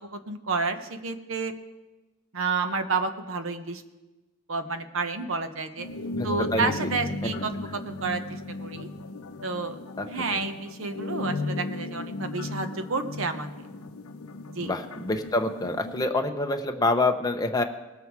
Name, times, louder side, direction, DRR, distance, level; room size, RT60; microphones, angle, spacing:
voice 1, 0.0-1.5 2.3-3.8 4.5-5.9 6.2-8.9 9.4-9.8 10.1-13.5 14.5-14.7, right 4 dB, 60° right, 8 dB, 0.9 m, -30 dB
sound 1, 5.8-16.1, left 2 dB, 80° left, 0.7 m, -36 dB
voice 2, 6.1-6.7 10.0-10.4 14.6-17.6, left 2 dB, 15° left, 4 dB, 0.7 m, -27 dB
19.5 x 7.1 x 4.7 m, 1.1 s
head